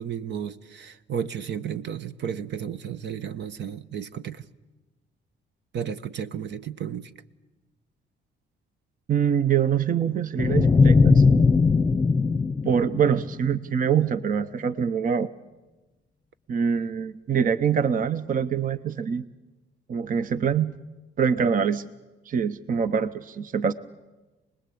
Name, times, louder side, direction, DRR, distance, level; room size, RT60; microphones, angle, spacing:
voice 1, 0.0-4.4 5.7-7.1, right 8 dB, 65° right, 1.0 m, -33 dB
voice 2, 9.1-11.2 12.6-15.3 16.5-19.2 19.9-20.7 21.2-21.9 22.3-23.7, right 7 dB, 45° right, 0.8 m, -24 dB
sound 1, 10.4-13.6, left 4 dB, 20° left, 0.8 m, -19 dB
27.5 x 20.0 x 8.5 m
cardioid pair, 100°, 20 cm